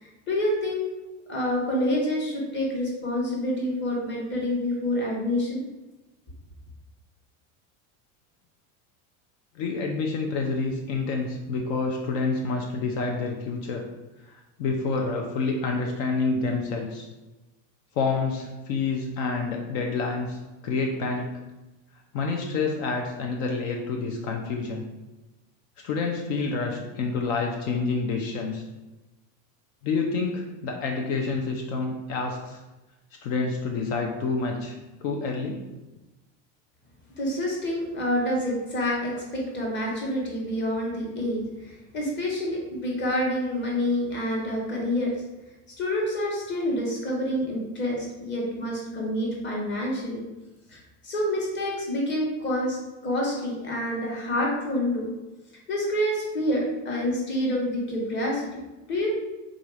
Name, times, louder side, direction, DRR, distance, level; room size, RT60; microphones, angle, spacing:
voice 1, 0.0-0.8 1.3-5.6 37.2-45.1 45.8-50.2 50.7-55.1 55.7-59.1, left 1 dB, 25° left, -2 dB, 1.2 m, -27 dB
voice 2, 9.5-13.9 14.3-17.1 18.0-21.3 22.1-24.8 25.8-28.6 29.8-32.6 33.2-35.6, left 4 dB, 70° left, 1 dB, 0.7 m, -28 dB
3.8 x 2.8 x 4.7 m, 1.1 s
supercardioid pair, 150°, 40 cm